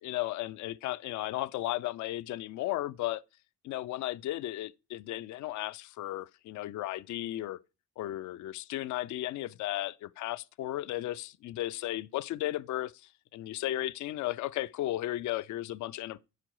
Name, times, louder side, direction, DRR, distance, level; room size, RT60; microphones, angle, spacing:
voice 1, 0.0-3.2 3.6-7.6 8.0-16.2, left 15 dB, 70° left, 0.5 m, -35 dB
9.8 x 5.0 x 4.6 m
cardioid pair, 90°, 30 cm